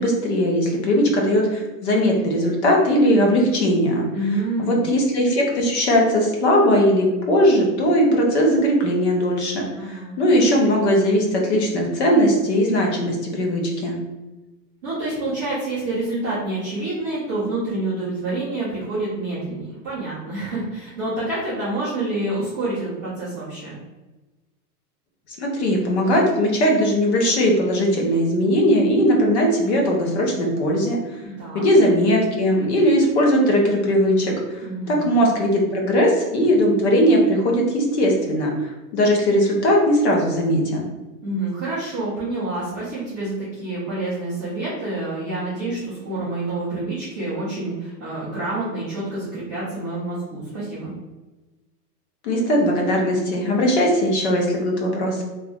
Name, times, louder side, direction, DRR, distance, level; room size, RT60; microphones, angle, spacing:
voice 1, 0.0-4.0 4.3-14.0 25.4-31.0 31.5-40.8 52.2-55.2, equal, 45° left, 0 dB, 0.7 m, -19 dB
voice 2, 4.1-4.8 9.7-10.1 14.8-23.7 31.4-31.7 34.6-35.0 41.2-50.9, right 2 dB, 15° right, -15 dB, 0.4 m, -27 dB
2.9 x 2.5 x 3.4 m, 1.1 s
supercardioid pair, 175°, 48 cm